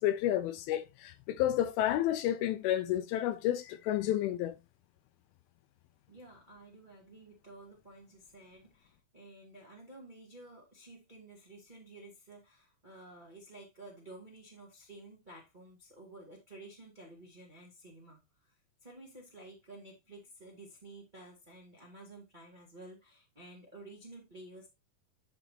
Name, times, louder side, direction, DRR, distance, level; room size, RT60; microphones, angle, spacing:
voice 1, 0.0-4.6, left 12 dB, 85° left, 2.4 m, -30 dB
voice 2, 6.1-18.5 18.8-24.7, right 2 dB, 20° right, 1.3 m, -52 dB
10.0 x 5.1 x 2.8 m
omnidirectional pair, 4.2 m